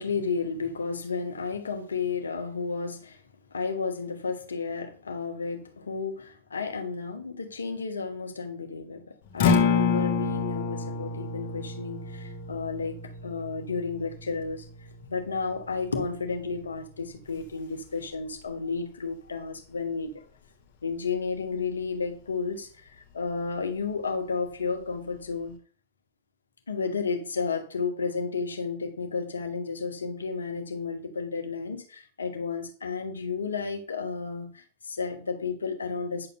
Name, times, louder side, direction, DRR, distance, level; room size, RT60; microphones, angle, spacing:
voice 1, 0.0-3.2 3.5-14.7 15.1-20.2 20.8-25.5 26.7-36.3, left 4 dB, 75° left, 1.0 m, -32 dB
Acoustic guitar, 9.3-17.5, left 5 dB, 50° left, 1.4 m, -30 dB
9.6 x 6.8 x 2.3 m
figure-of-eight pair, 90°, 0 cm